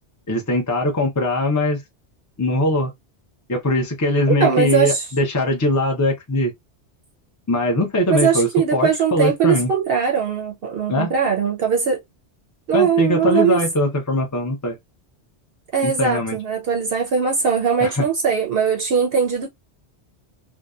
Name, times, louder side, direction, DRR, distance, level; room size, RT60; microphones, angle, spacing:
voice 1, 0.3-1.8 2.4-2.9 3.5-6.5 7.5-9.7 10.9-11.1 12.7-14.8 15.8-16.4 17.8-18.1, left 1 dB, 25° left, 0.4 m, -21 dB
voice 2, 4.3-5.0 8.1-12.0 12.7-13.6 15.7-19.5, right 7 dB, 65° right, 0.7 m, -20 dB
2.7 x 2.1 x 2.3 m
omnidirectional pair, 1.1 m